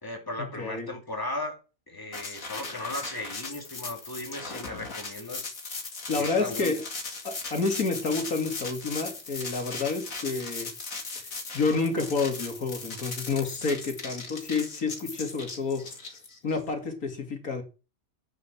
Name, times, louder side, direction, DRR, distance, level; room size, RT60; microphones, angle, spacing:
voice 1, 0.0-1.6 1.9-5.5 6.2-6.8, left 2 dB, 15° left, 2.8 m, -36 dB
voice 2, 0.6-0.9 6.1-6.9 7.2-10.7 11.5-16.0 16.4-17.6, left 4 dB, 85° left, 2.7 m, -29 dB
sound 1, 2.1-16.6, left 3 dB, 70° left, 2.6 m, -38 dB
10.0 x 8.4 x 6.0 m
omnidirectional pair, 1.5 m